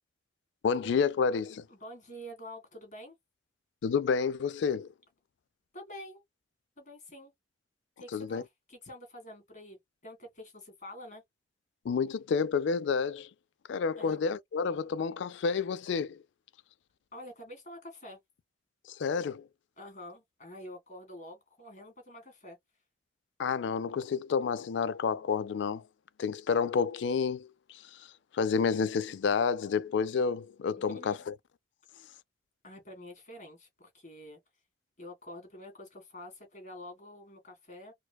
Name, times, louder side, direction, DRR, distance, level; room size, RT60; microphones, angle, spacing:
voice 1, 0.6-1.6 3.8-4.9 8.1-8.4 11.9-13.3 13.7-16.2 18.9-19.5 23.4-25.8 26.2-27.8 28.3-31.3, left 5 dB, 70° left, 0.3 m, -29 dB
voice 2, 1.7-3.2 5.7-6.2 6.8-7.3 8.0-11.2 14.0-14.2 17.1-18.2 19.8-22.6 30.8-31.2 32.6-34.4 35.0-37.9, left 1 dB, 40° left, 2.0 m, -47 dB
4.5 x 2.1 x 2.2 m
head